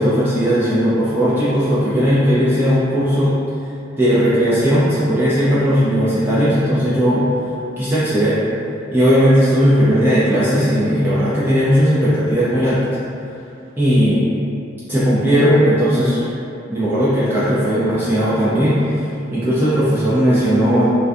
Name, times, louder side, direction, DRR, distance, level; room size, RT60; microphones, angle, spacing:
voice 1, 0.0-3.3 4.0-7.3 7.8-8.4 8.9-12.8 13.8-14.2 14.9-16.2 16.7-20.8, equal, 10° right, -11 dB, 0.3 m, -16 dB
2.5 x 2.1 x 2.3 m, 2.6 s
head